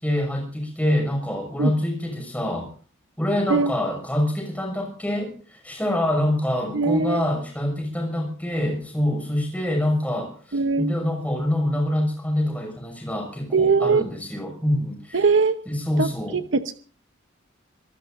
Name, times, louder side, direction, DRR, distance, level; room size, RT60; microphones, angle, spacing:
voice 1, 0.0-2.7 3.2-15.3 15.7-16.4, left 1 dB, 5° left, 3 dB, 6.1 m, -25 dB
voice 2, 6.7-7.2 10.5-11.0 13.5-14.0 15.1-15.6 16.0-16.8, right 4 dB, 70° right, 9 dB, 0.9 m, -21 dB
25.5 x 19.0 x 2.6 m, 0.40 s
head